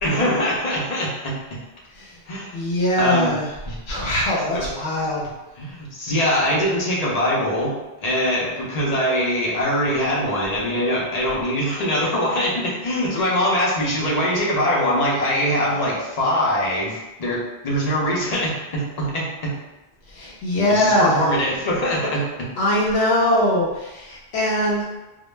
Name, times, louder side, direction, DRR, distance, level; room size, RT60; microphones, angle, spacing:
voice 1, 0.0-1.4 2.3-2.6 3.0-3.3 3.7-4.0 4.5-4.6 5.6-7.7 8.0-19.5 20.7-22.5, equal, 45° left, -5 dB, 0.6 m, -23 dB
voice 2, 1.9-2.2 2.5-3.5 3.9-5.3 20.1-21.3 22.6-25.0, left 1 dB, 75° left, -5 dB, 0.8 m, -21 dB
2.1 x 2.0 x 3.1 m, 1.0 s
omnidirectional pair, 1.1 m